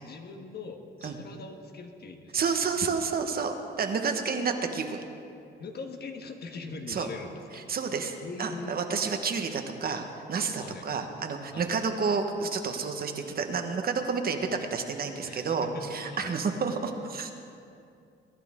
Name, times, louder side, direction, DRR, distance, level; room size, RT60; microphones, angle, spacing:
voice 1, 0.0-2.5 5.6-7.6 8.2-8.8 10.6-10.8 11.5-11.7 15.2-16.4, left 3 dB, 55° left, 4 dB, 1.4 m, -41 dB
voice 2, 2.3-5.0 6.9-7.1 7.7-10.0 10.3-17.3, right 5 dB, 50° right, 5 dB, 1.2 m, -30 dB
21.5 x 10.5 x 3.7 m, 2.5 s
cardioid pair, 90°, 20 cm